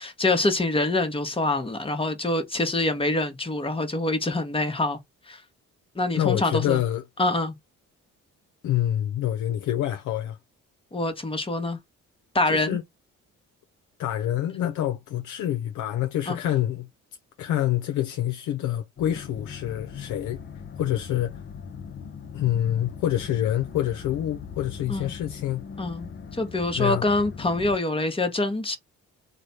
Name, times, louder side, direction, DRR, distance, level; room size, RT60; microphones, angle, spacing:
voice 1, 0.0-5.0 5.3-5.4 6.0-6.8 7.2-7.5 10.9-11.8 12.3-12.8 16.3-16.4 24.9-25.1 25.8-26.1 26.4-28.8, left 2 dB, 20° left, 1.0 m, -25 dB
voice 2, 6.1-7.0 8.6-10.4 12.5-12.8 14.0-16.9 17.4-20.4 20.8-21.3 22.3-25.6 26.7-27.0, left 12 dB, 80° left, 0.6 m, -26 dB
sound 1, 19.0-27.8, left 6 dB, 40° left, 0.6 m, -40 dB
3.2 x 2.2 x 4.1 m
cardioid pair, 90°, 30 cm